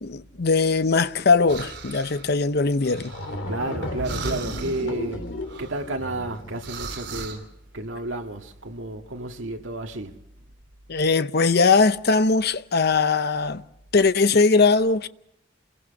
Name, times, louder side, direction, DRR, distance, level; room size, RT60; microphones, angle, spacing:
voice 1, 0.0-3.1 10.9-13.6 13.9-15.1, left 4 dB, 55° left, 0.8 m, -20 dB
sound 1, 1.5-2.3 2.8-3.7 4.0-4.9 5.4-7.4, right 5 dB, 60° right, 3.3 m, -38 dB
sound 2, 2.6-2.7 3.0-6.7, left 1 dB, 75° left, 3.1 m, -34 dB
voice 2, 3.5-5.2 5.6-7.5 7.7-10.2, right 2 dB, 85° right, 1.9 m, -31 dB
28.0 x 22.0 x 5.3 m
head